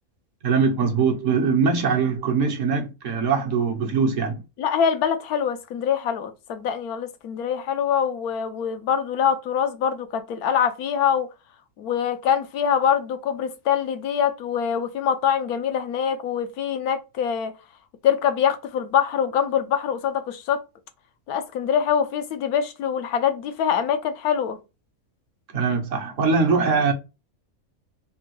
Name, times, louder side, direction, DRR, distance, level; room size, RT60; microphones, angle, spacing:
voice 1, 0.4-4.4 25.5-26.9, right 5 dB, 60° right, 1.1 m, -22 dB
voice 2, 4.6-11.3 11.8-17.5 18.0-20.6 21.3-24.6, left 8 dB, 80° left, 1.1 m, -24 dB
3.4 x 2.2 x 3.0 m
omnidirectional pair, 1.6 m